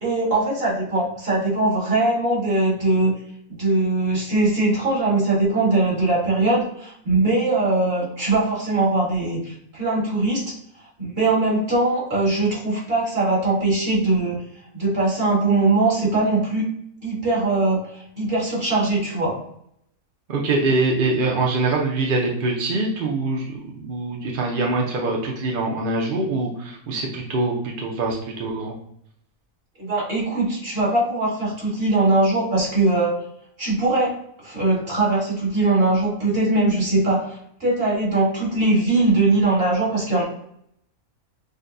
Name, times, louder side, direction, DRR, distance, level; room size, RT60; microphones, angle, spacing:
voice 1, 0.0-3.1 3.6-10.5 11.0-14.4 14.7-16.6 17.0-19.3 29.8-33.2 33.6-40.2, right 2 dB, 40° right, -6 dB, 2.0 m, -21 dB
voice 2, 20.3-28.8, right 3 dB, 55° right, -1 dB, 0.6 m, -24 dB
6.5 x 2.2 x 2.5 m, 0.72 s
omnidirectional pair, 1.6 m